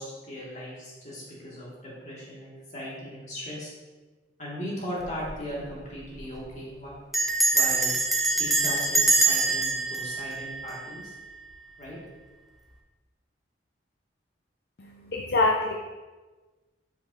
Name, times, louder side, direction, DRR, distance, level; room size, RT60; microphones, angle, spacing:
voice 1, 0.0-3.7 4.4-6.9 7.5-7.9 8.3-11.1 11.8-12.0, equal, 40° left, -6 dB, 2.1 m, -38 dB
Bell, 5.0-5.4 5.6-5.7 6.0-6.3 7.1-11.2, right 3 dB, ahead, 0.6 m, -25 dB
voice 2, 14.8-15.7, left 2 dB, 60° left, 1 dB, 0.5 m, -25 dB
8.2 x 5.0 x 2.7 m, 1.3 s
head